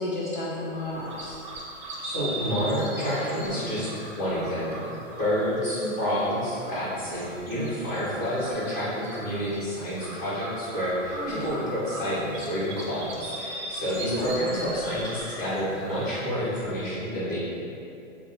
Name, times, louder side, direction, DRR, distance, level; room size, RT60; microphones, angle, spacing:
voice 1, 0.0-1.4 5.7-6.0 11.1-11.4 14.1-14.3, left 1 dB, 40° left, -6 dB, 0.4 m, -32 dB
sound 1, 0.7-16.8, right 1 dB, 35° right, 0.6 m, -40 dB
voice 2, 2.0-4.9 5.2-17.5, equal, 20° left, -11 dB, 1.5 m, -29 dB
3.7 x 2.2 x 4.1 m, 2.6 s
hypercardioid pair, 155°, 39 cm